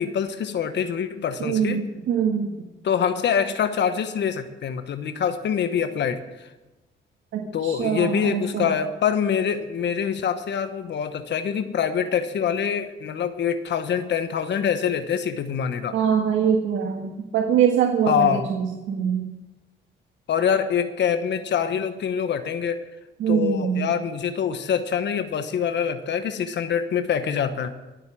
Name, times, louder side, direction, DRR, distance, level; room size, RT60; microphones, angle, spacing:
voice 1, 0.0-1.8 2.8-6.5 7.5-15.9 18.1-18.5 20.3-22.8 23.3-27.7, left 7 dB, 60° left, 9 dB, 1.2 m, -25 dB
voice 2, 1.4-2.5 7.3-8.7 15.9-19.3 23.2-23.9, right 8 dB, 75° right, 1 dB, 1.6 m, -23 dB
23.0 x 7.9 x 6.2 m, 1.1 s
cardioid pair, 90°, 20 cm